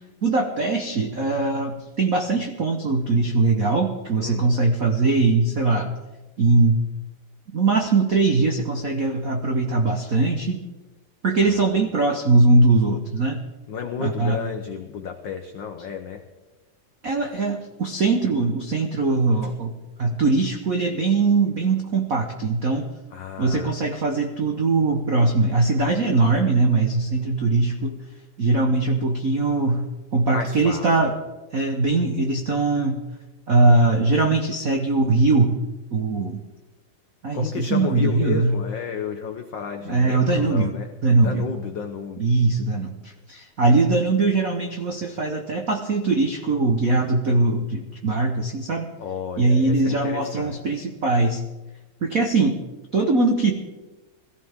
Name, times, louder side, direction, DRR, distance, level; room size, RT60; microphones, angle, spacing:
voice 1, 0.2-5.9 6.4-6.8 7.5-10.6 11.2-13.4 14.0-14.4 17.0-22.9 23.4-28.0 28.4-29.9 30.1-31.1 31.5-33.0 33.5-35.5 35.9-36.4 37.2-38.6 39.8-40.7 41.0-41.5 42.2-48.9 49.4-51.4 52.0-52.6 52.9-53.5, right 3 dB, 70° right, 3 dB, 0.8 m, -21 dB
voice 2, 4.2-4.5 11.4-11.7 13.7-16.2 23.1-23.8 30.3-31.1 37.3-40.9 41.2-42.3 49.0-50.6, left 7 dB, 75° left, 5 dB, 1.0 m, -32 dB
21.5 x 14.5 x 3.6 m, 1.1 s
omnidirectional pair, 3.3 m